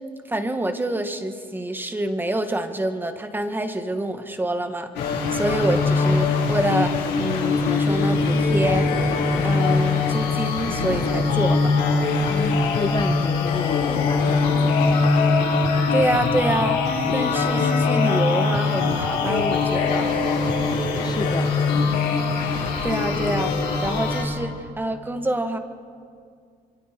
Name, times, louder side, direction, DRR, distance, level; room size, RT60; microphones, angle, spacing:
voice 1, 0.3-4.9 5.3-8.9 9.4-11.7 15.9-16.8 17.1-20.1 22.2-22.3 22.8-23.5 23.8-25.6, right 1 dB, 10° right, 7 dB, 1.7 m, -26 dB
sound 1, 5.0-24.2, left 4 dB, 85° left, 4.4 m, -22 dB
voice 2, 12.3-15.1 21.0-21.5, left 5 dB, 25° left, 8 dB, 0.7 m, -30 dB
27.5 x 23.5 x 4.6 m, 2.2 s
cardioid pair, 110°, 17 cm